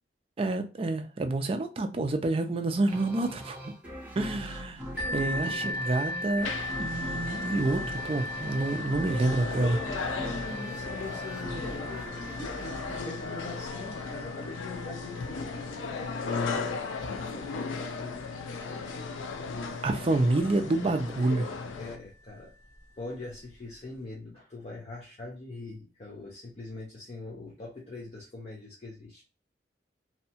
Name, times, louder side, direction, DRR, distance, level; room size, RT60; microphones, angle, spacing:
voice 1, 0.4-3.7 4.2-6.5 6.8-9.8 19.8-21.6, right 2 dB, 30° right, 0.3 m, -28 dB
sound 1, 2.9-14.1, equal, 10° right, 0.7 m, -41 dB
sound 2, 5.0-20.5 21.3-21.4 21.9-22.0, left 1 dB, 55° left, 1.2 m, -39 dB
voice 2, 5.1-5.7 6.9-7.1 10.2-16.9 17.2-18.3 21.8-22.5 23.0-29.2, left 2 dB, 35° left, 0.5 m, -43 dB
sound 3, 6.4-22.0, left 4 dB, 90° left, 0.4 m, -37 dB
2.7 x 2.2 x 2.7 m
head